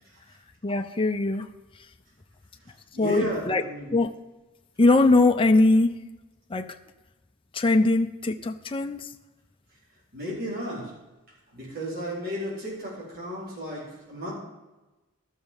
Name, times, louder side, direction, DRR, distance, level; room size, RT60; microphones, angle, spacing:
voice 1, 0.6-1.5 3.0-3.6 3.9-4.1 4.8-5.9 6.5-6.7 7.5-9.1, left 2 dB, 25° left, 6 dB, 0.6 m, -21 dB
voice 2, 2.9-3.9 10.1-10.9 11.5-14.3, equal, 45° right, -7 dB, 4.8 m, -33 dB
12.5 x 6.5 x 7.2 m, 1.1 s
head